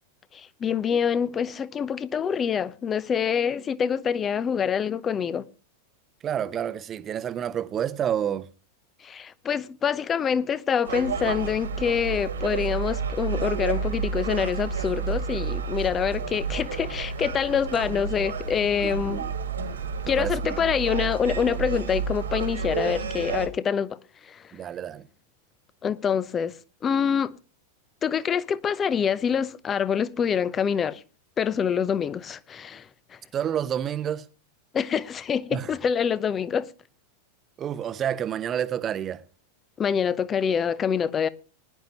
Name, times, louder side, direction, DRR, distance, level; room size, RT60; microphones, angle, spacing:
voice 1, 0.3-5.4 9.0-19.2 20.1-23.9 24.2-24.5 25.8-26.6 26.8-27.3 28.0-31.0 31.4-33.2 34.7-36.7 39.8-41.3, left 7 dB, 25° left, 0.6 m, -26 dB
voice 2, 6.2-8.5 18.8-19.3 20.1-20.7 24.5-25.0 33.3-34.3 35.5-35.7 37.6-39.2, right 9 dB, 25° right, 0.8 m, -29 dB
Gull seagull, 10.8-23.5, right 6 dB, 70° right, 2.0 m, -30 dB
20.0 x 10.5 x 3.0 m
figure-of-eight pair, 90°, 0 cm